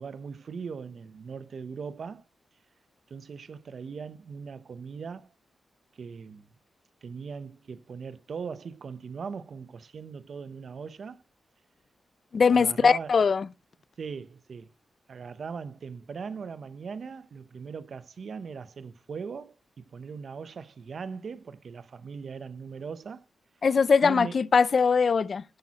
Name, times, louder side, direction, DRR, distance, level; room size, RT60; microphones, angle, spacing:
voice 1, 0.0-2.2 3.1-5.3 5.9-6.5 7.0-11.2 12.5-13.2 14.0-14.7 15.1-23.3 24.0-24.4, right 5 dB, 60° right, 0.7 m, -39 dB
voice 2, 12.3-13.4 23.6-25.4, left 5 dB, 50° left, 0.4 m, -21 dB
10.5 x 8.3 x 2.9 m
wide cardioid pair, 105°, 0 cm